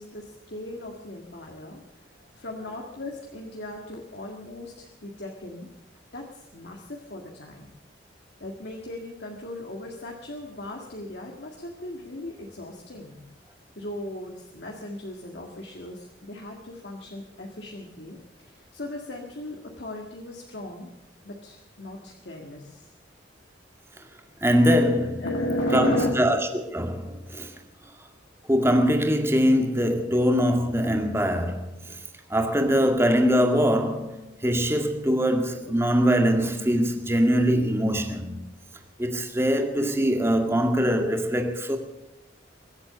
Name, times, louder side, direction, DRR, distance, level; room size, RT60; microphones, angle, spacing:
voice 1, 0.0-5.7 6.1-7.7 8.4-13.2 13.8-20.9 21.2-22.9 25.2-26.1, left 1 dB, 60° left, 1.9 m, -36 dB
voice 2, 24.4-25.3 25.7-26.4 26.7-27.5 28.5-32.0 32.3-38.4 39.0-41.8, equal, 15° right, 2.0 m, -22 dB
23.5 x 8.2 x 6.9 m
head